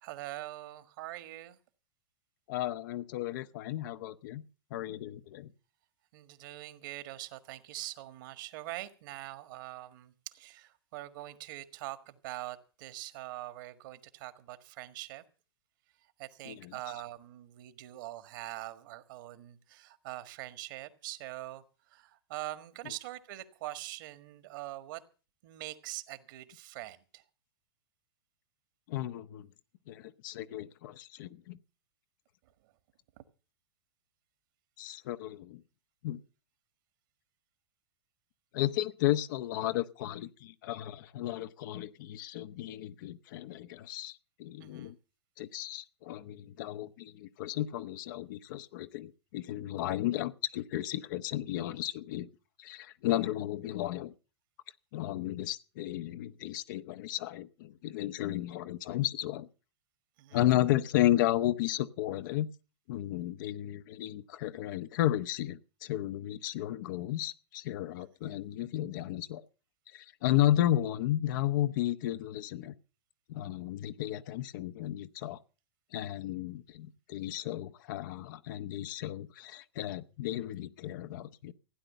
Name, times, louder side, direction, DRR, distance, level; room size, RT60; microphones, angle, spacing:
voice 1, 0.0-1.6 6.1-15.2 16.2-25.0 25.4-27.2 32.6-32.7 33.2-33.3 44.6-44.9 60.2-60.4, right 16 dB, 50° right, 1.6 m, -43 dB
voice 2, 2.5-4.4 4.7-5.5 16.5-16.7 28.9-29.5 29.9-31.6 34.8-35.6 36.0-36.2 38.5-44.9 45.4-52.3 52.6-54.1 54.9-59.5 60.3-62.5 62.9-69.5 69.9-72.7 73.3-75.4 75.9-81.5, left 14 dB, 50° left, 0.9 m, -33 dB
16.0 x 9.9 x 6.7 m
figure-of-eight pair, 100°, 14 cm